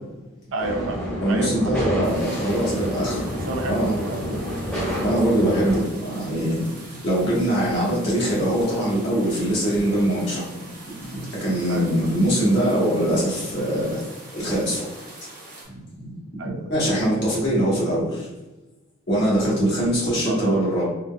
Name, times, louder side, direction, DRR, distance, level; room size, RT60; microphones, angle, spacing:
voice 1, 0.5-2.5 3.5-4.5 11.7-12.1 16.4-16.7 20.3-20.6, right 2 dB, 70° right, 3 dB, 0.4 m, -31 dB
sound 1, 0.6-5.8, equal, 5° left, 0.9 m, -29 dB
voice 2, 1.2-3.2 3.7-3.9 5.0-6.6 7.0-10.4 11.0-13.9 14.3-14.8 16.7-18.0 19.1-20.8, right 1 dB, 55° left, -7 dB, 1.3 m, -22 dB
sound 2, 2.0-15.7, right 2 dB, 45° right, 0.9 m, -43 dB
3.7 x 2.4 x 2.3 m, 1.1 s
head